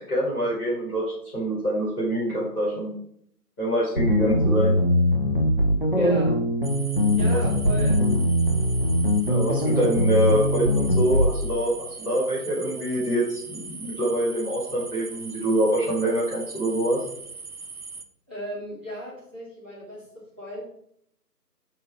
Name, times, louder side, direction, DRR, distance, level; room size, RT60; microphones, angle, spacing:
voice 1, 0.0-2.9 3.6-4.8 5.9-6.2 7.3-7.4 9.3-17.0, right 1 dB, 10° left, -13 dB, 2.5 m, -25 dB
sound 1, 4.0-11.4, equal, 35° left, 0.6 m, -21 dB
voice 2, 6.0-6.4 7.2-8.0 8.6-8.7 18.3-20.6, equal, 5° right, -13 dB, 1.3 m, -36 dB
sound 2, 6.6-18.1, right 4 dB, 60° right, 1.0 m, -40 dB
6.5 x 5.9 x 4.5 m, 0.68 s
figure-of-eight pair, 160°, 49 cm